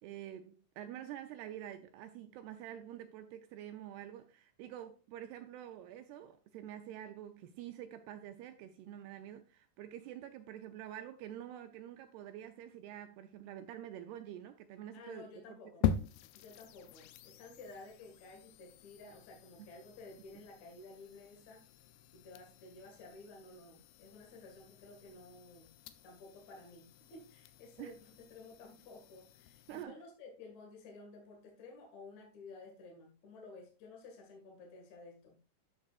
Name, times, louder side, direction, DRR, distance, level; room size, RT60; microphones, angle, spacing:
voice 1, 0.0-15.6 27.8-27.9 29.7-30.0, right 11 dB, 80° right, 2.4 m, -47 dB
voice 2, 14.9-15.9 16.3-21.6 22.1-25.7 26.0-35.3, left 3 dB, 50° left, 2.8 m, -53 dB
sound 1, 15.8-29.8, left 9 dB, 85° left, 2.1 m, -43 dB
12.5 x 6.5 x 2.4 m
omnidirectional pair, 5.1 m